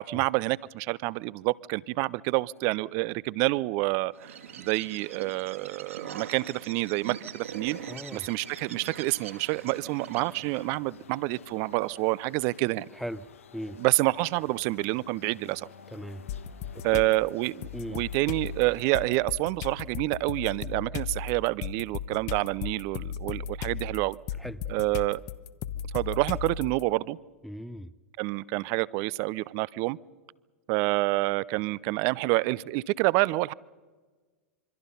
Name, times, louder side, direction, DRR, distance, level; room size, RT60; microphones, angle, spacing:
voice 1, 0.0-4.3 4.6-7.8 8.1-12.9 13.8-15.7 16.8-24.2 24.7-25.2 25.9-27.2 28.2-30.0 30.7-33.5, right 21 dB, 40° right, 23 dB, 0.6 m, -28 dB
Bird, 4.1-10.8, right 8 dB, 70° right, 2.5 m, -43 dB
sound 1, 7.4-18.9, left 7 dB, 70° left, 1.6 m, -51 dB
voice 2, 7.9-8.3 12.9-13.2 13.5-13.8 15.9-16.2 16.9-17.0 17.7-18.0 24.4-24.6 27.4-27.9, equal, ahead, 13 dB, 0.7 m, -38 dB
sound 2, 16.3-17.1 17.6-26.8, left 7 dB, 40° left, 1.2 m, -36 dB
27.0 x 24.5 x 5.5 m, 1.4 s
figure-of-eight pair, 95°, 7 cm